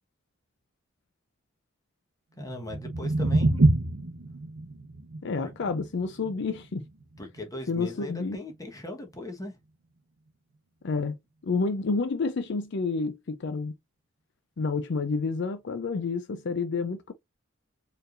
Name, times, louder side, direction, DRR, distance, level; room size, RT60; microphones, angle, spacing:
voice 1, 2.4-3.6 7.2-9.6, left 2 dB, 15° left, 1.2 m, -39 dB
sound 1, 2.4-8.6, right 2 dB, 90° right, 0.9 m, -28 dB
voice 2, 5.2-6.8 7.7-8.4 10.8-11.1 11.4-13.7 14.6-17.1, left 4 dB, 60° left, 0.5 m, -29 dB
4.5 x 3.3 x 2.5 m
head